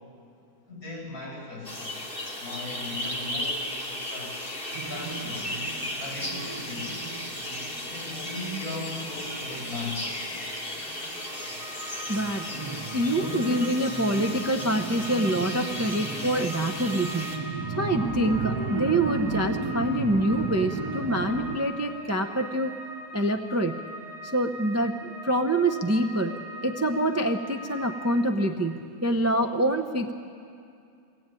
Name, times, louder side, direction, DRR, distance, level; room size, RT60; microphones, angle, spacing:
voice 1, 0.7-4.4 4.6-5.4 6.0-7.0 7.8-10.2, left 2 dB, 65° left, -3 dB, 8.6 m, -38 dB
sound 1, 1.6-17.4, left 1 dB, 35° left, 3.0 m, -35 dB
sound 2, 4.7-11.7 12.0-21.6, right 4 dB, 65° right, 1.6 m, -35 dB
sound 3, 11.1-28.3, equal, 85° left, 4.1 m, -42 dB
voice 2, 12.1-12.5 12.9-17.3 17.8-22.7 23.1-23.8 24.2-30.1, right 1 dB, 15° right, 4 dB, 0.6 m, -26 dB
22.5 x 18.0 x 9.1 m, 2.4 s
omnidirectional pair, 1.6 m